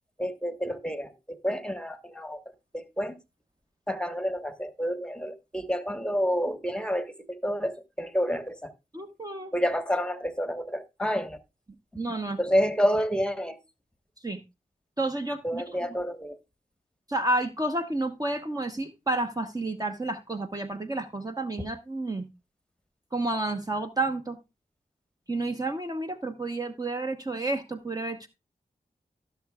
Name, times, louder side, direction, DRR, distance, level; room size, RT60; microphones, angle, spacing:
voice 1, 0.2-2.4 2.7-3.2 3.9-8.7 9.5-11.4 12.4-13.6 15.4-16.4, equal, 5° left, 1.3 m, -29 dB
voice 2, 8.9-9.5 11.9-12.4 14.2-14.4 15.0-15.6 17.1-22.3 23.1-24.4 25.3-28.3, right 2 dB, 25° right, 1.0 m, -30 dB
16.5 x 6.7 x 2.3 m
cardioid pair, 50°, 16 cm